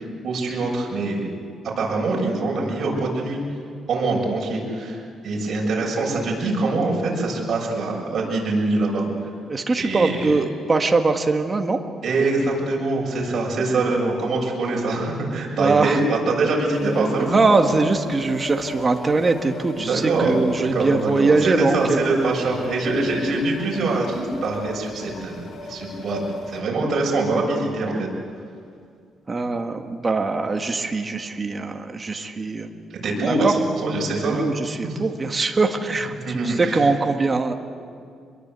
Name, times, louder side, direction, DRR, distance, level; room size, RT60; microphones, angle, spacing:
voice 1, 0.2-1.3 1.8-3.4 3.9-5.0 5.2-9.0 9.7-10.3 12.0-17.8 19.8-26.2 26.5-28.1 32.9-33.5 33.8-34.5 34.8-34.9 36.2-36.9, right 2 dB, 50° right, -2 dB, 7.2 m, -24 dB
voice 2, 9.5-11.8 15.6-16.0 17.2-22.0 29.3-32.7 33.3-33.5 34.4-37.5, right 3 dB, 25° right, 5 dB, 1.7 m, -22 dB
sound 1, 16.7-26.6, left 3 dB, 55° left, 2.3 m, -37 dB
26.0 x 22.0 x 8.3 m, 2.3 s
cardioid pair, 130°, 0 cm